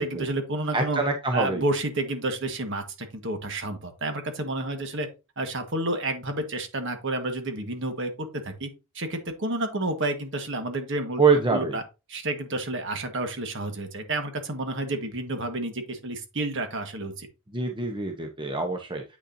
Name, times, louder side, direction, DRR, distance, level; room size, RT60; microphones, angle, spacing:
voice 1, 0.0-1.0 1.3-5.1 5.4-8.7 8.9-11.2 11.5-11.8 12.1-17.3, right 2 dB, 55° right, 6 dB, 1.5 m, -30 dB
voice 2, 0.7-1.6 11.2-11.8 17.5-19.0, right 4 dB, 20° right, 3 dB, 0.9 m, -25 dB
8.5 x 6.5 x 2.7 m, 0.27 s
head